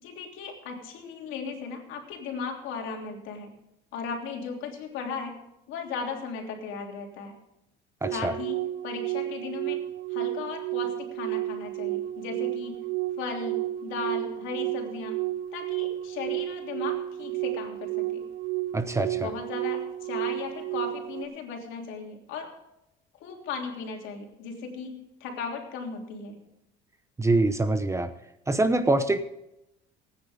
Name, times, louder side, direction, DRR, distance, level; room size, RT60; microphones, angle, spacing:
voice 1, 0.0-3.5 3.9-5.4 5.7-7.3 8.1-8.6 8.8-9.8 10.1-12.8 13.2-15.2 15.5-18.2 19.1-22.5 23.2-26.4, left 5 dB, 75° left, 2 dB, 3.1 m, -36 dB
voice 2, 8.0-8.3 18.7-19.3 27.2-28.1 28.5-29.2, right 2 dB, 15° right, 10 dB, 0.8 m, -24 dB
sound 1, 8.0-21.2, right 16 dB, 80° right, 0.9 m, -32 dB
19.0 x 9.7 x 3.6 m, 0.86 s
cardioid pair, 120°, 20 cm